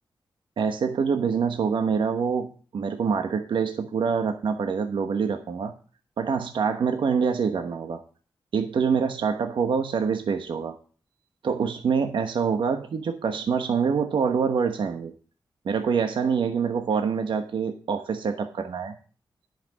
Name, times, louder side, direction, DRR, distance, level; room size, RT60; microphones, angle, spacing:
voice 1, 0.6-5.7 6.2-8.0 8.5-10.8 11.4-15.1 15.6-18.9, right 6 dB, 80° right, 6 dB, 1.1 m, -25 dB
10.5 x 5.9 x 7.3 m, 0.39 s
wide cardioid pair, 110°, 8 cm